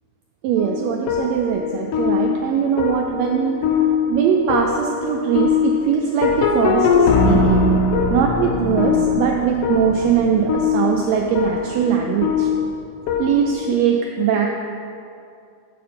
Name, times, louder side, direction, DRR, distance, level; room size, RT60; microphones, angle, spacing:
voice 1, 0.4-3.7 4.1-7.7 8.1-12.5 13.2-14.5, right 7 dB, 85° right, 1 dB, 1.5 m, -21 dB
sound 1, 0.6-13.7, left 5 dB, 90° left, 1.3 m, -21 dB
7.5 x 6.8 x 4.3 m, 2.4 s
omnidirectional pair, 3.5 m